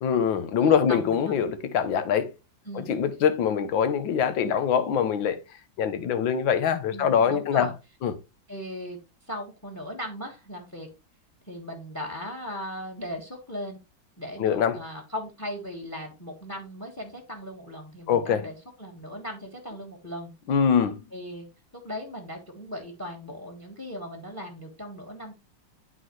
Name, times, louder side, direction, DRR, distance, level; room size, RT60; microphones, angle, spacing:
voice 1, 0.0-2.3 2.7-5.4 5.8-7.7 8.0-8.1 14.4-14.8 18.1-18.5 20.5-21.0, left 7 dB, 85° left, 1.7 m, -23 dB
voice 2, 0.6-1.4 2.6-2.9 6.9-7.7 8.5-9.0 9.3-10.9 11.5-13.8 14.2-20.3 21.1-21.5 21.7-25.3, equal, 10° left, 1.3 m, -38 dB
11.5 x 4.0 x 3.1 m
omnidirectional pair, 2.1 m